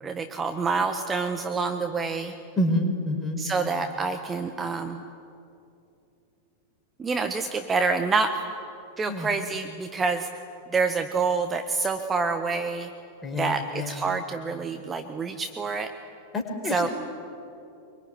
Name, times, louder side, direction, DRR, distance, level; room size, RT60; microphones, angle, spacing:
voice 1, 0.0-2.3 3.4-5.0 7.0-8.4 9.0-10.3 10.7-12.9 13.3-15.9 16.7-16.9, right 4 dB, 20° right, 7 dB, 1.4 m, -27 dB
voice 2, 2.6-3.4 9.1-9.3 13.2-14.0 16.3-16.9, left 1 dB, 15° left, 3 dB, 5.1 m, -28 dB
25.0 x 23.5 x 10.0 m, 2.7 s
figure-of-eight pair, 90°, 0 cm